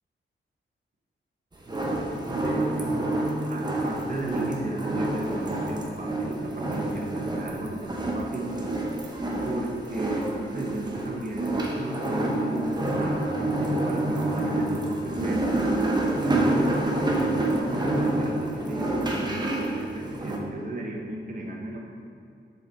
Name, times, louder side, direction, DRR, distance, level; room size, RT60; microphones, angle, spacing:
sound 1, 1.6-20.4, right 1 dB, 20° right, 0.8 m, -28 dB
voice 1, 2.3-8.5 9.4-15.7 16.4-22.1, right 1 dB, 40° right, -1 dB, 1.1 m, -35 dB
7.0 x 4.9 x 4.5 m, 2.4 s
wide cardioid pair, 150°, 21 cm